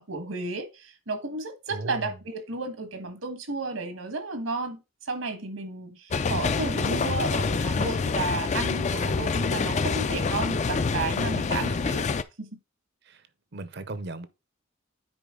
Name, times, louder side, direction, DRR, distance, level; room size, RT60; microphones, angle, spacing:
voice 1, 0.0-12.1 12.4-12.5, right 3 dB, 80° right, 1.6 m, -33 dB
voice 2, 1.7-2.2 11.6-11.7 13.1-13.2 13.5-14.3, right 2 dB, 55° right, 0.7 m, -37 dB
sound 1, 6.1-12.2, left 4 dB, 35° left, 0.4 m, -26 dB
9.7 x 4.5 x 3.7 m
head